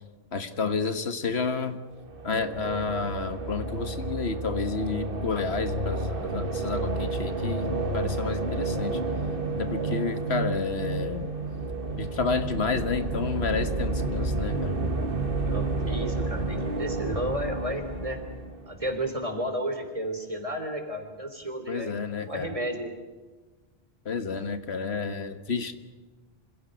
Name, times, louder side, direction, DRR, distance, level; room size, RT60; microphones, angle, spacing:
voice 1, 0.3-1.8 2.2-9.0 9.6-11.3 12.0-14.8 21.7-22.5 24.0-25.7, left 4 dB, 80° left, 10 dB, 1.7 m, -30 dB
sound 1, 2.0-19.0, right 2 dB, 60° right, 2.1 m, -30 dB
voice 2, 15.4-18.2 18.7-21.9 22.2-22.9, right 1 dB, 35° right, 6 dB, 3.6 m, -32 dB
26.0 x 17.0 x 9.5 m, 1.3 s
omnidirectional pair, 1.1 m